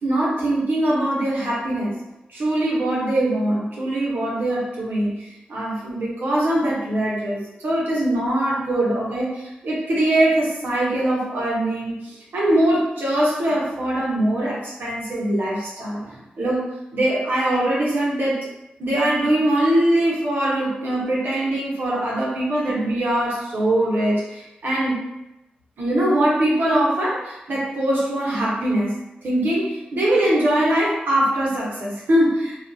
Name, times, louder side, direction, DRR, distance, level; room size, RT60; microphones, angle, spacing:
voice 1, 0.0-2.0 2.3-18.5 18.8-25.0 25.8-28.9 29.2-32.6, right 1 dB, 70° right, -6 dB, 0.9 m, -22 dB
2.4 x 2.3 x 2.6 m, 0.94 s
supercardioid pair, 40°, 4 cm